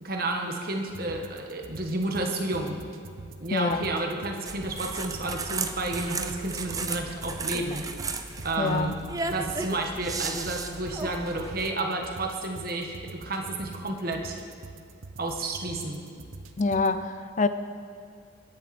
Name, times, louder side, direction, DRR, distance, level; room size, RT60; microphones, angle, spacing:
voice 1, 0.0-2.8 3.4-7.9 8.4-9.0 9.3-14.4 15.2-16.0, right 2 dB, 45° right, 2 dB, 1.6 m, -31 dB
sound 1, 0.9-16.9, right 3 dB, 85° right, 0.8 m, -46 dB
voice 2, 3.5-3.9 8.6-9.0 16.6-17.5, left 3 dB, 35° left, 11 dB, 0.5 m, -26 dB
sound 2, 4.5-11.7, right 4 dB, 15° right, 0.6 m, -35 dB
23.0 x 10.5 x 4.4 m, 2.3 s
head